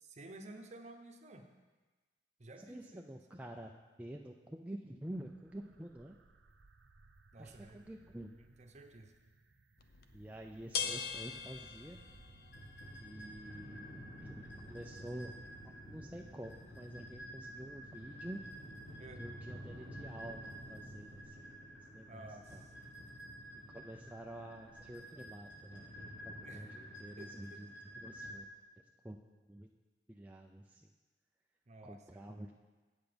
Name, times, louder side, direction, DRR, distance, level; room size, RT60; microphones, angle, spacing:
voice 1, 0.0-1.5 2.4-3.4 7.3-7.8 8.4-9.2 19.0-19.2 22.0-22.7 26.4-26.6 27.2-27.6 31.7-32.3, right 2 dB, 40° right, 4 dB, 0.8 m, -53 dB
voice 2, 2.7-3.7 4.0-6.2 7.4-8.4 10.1-12.0 13.0-15.4 15.9-18.4 19.2-21.6 21.9-22.6 23.7-25.9 26.4-28.5 29.0-29.7 30.1-30.9 31.8-32.5, right 1 dB, 10° right, 0 dB, 0.4 m, -48 dB
sound 1, 5.1-25.1, right 2 dB, 80° right, 0.7 m, -61 dB
sound 2, 9.8-21.2, left 7 dB, 55° left, 0.6 m, -47 dB
sound 3, 12.5-28.4, equal, 70° left, 1.8 m, -50 dB
8.2 x 8.0 x 5.1 m, 1.3 s
head